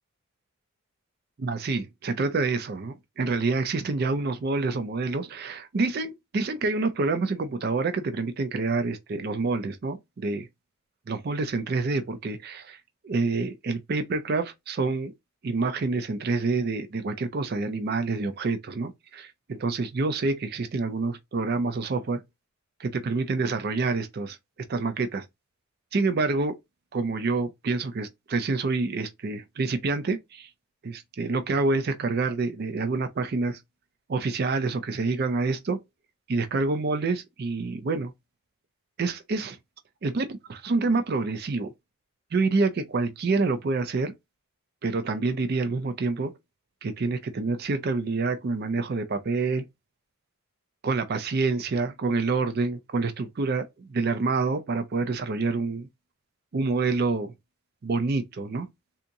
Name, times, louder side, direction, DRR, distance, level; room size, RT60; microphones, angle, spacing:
voice 1, 1.4-10.5 11.1-12.8 13.0-15.1 15.4-22.2 22.8-24.4 24.7-25.2 25.9-26.6 26.9-30.5 30.8-33.6 34.1-35.8 36.3-38.1 39.0-39.6 40.0-41.7 42.3-44.1 44.8-46.3 46.8-49.6 50.8-55.9 56.5-57.3 57.8-58.7, right 3 dB, 45° right, 0.4 m, -27 dB
3.5 x 2.8 x 2.6 m
head